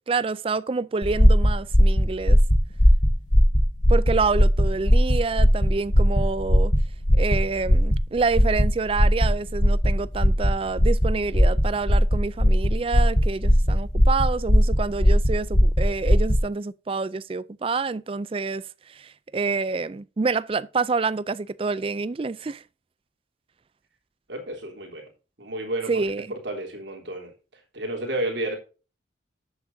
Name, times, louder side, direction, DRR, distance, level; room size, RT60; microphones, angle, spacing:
voice 1, 0.1-2.4 3.9-6.7 7.1-18.6 18.9-22.6 25.9-26.3, right 4 dB, 30° right, 0.4 m, -27 dB
sound 1, 1.0-16.4, equal, 45° left, 1.5 m, -19 dB
voice 2, 24.3-25.1 25.4-26.0 26.3-27.3 27.7-28.6, right 1 dB, 75° right, 3.3 m, -31 dB
13.0 x 8.1 x 2.7 m
head